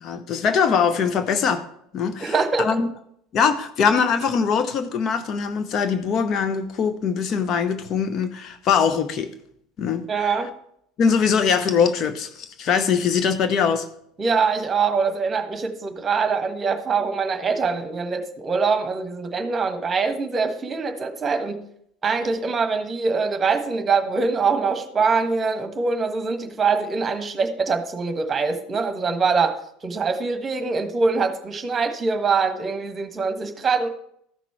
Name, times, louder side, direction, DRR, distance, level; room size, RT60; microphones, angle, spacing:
voice 1, 0.0-1.7 1.9-2.9 3.3-9.3 9.8-10.3 11.0-13.9, left 6 dB, 45° left, 0.7 m, -22 dB
voice 2, 2.2-2.7 10.1-10.5 14.2-21.6 22.0-33.9, right 4 dB, 25° right, 1.4 m, -23 dB
14.0 x 6.0 x 4.5 m
figure-of-eight pair, 70°, 0 cm